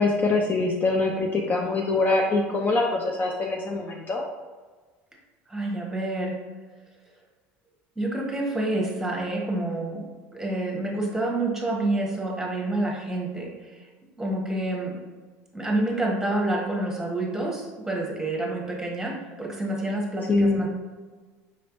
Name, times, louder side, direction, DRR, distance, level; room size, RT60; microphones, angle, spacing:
voice 1, 0.0-4.2 20.3-20.7, left 3 dB, 30° left, 0 dB, 0.6 m, -24 dB
voice 2, 5.5-6.3 8.0-13.8 14.2-15.0 15.5-20.7, right 2 dB, 5° right, -2 dB, 1.2 m, -28 dB
5.1 x 3.2 x 2.6 m, 1.4 s
supercardioid pair, 90°, 6 cm